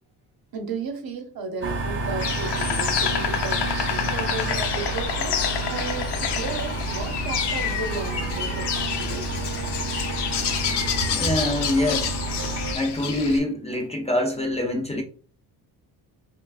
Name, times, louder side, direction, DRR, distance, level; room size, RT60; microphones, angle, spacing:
voice 1, 0.5-9.3, right 4 dB, 65° right, 0.8 m, -34 dB
sound 1, 1.6-12.7, right 2 dB, 30° right, 0.6 m, -30 dB
Insect, 2.2-13.4, left 8 dB, 85° left, 0.6 m, -28 dB
voice 2, 11.1-12.2 12.7-15.0, left 1 dB, 15° left, 0.4 m, -25 dB
5.4 x 2.3 x 2.4 m
wide cardioid pair, 155°, 39 cm